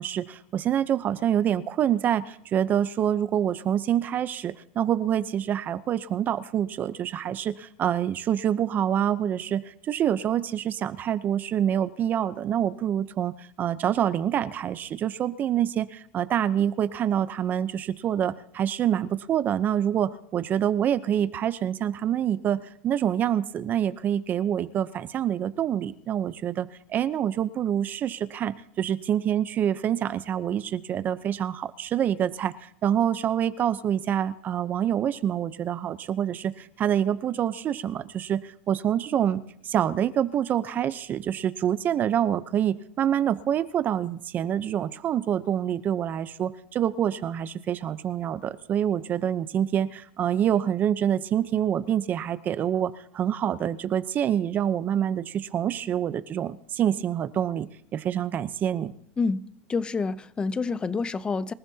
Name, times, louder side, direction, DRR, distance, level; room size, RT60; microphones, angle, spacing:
voice 1, 0.0-58.9, right 10 dB, 30° right, 0.7 m, -26 dB
voice 2, 59.2-61.5, left 4 dB, 15° left, 0.6 m, -28 dB
26.0 x 14.5 x 2.8 m
supercardioid pair, 145°, 6 cm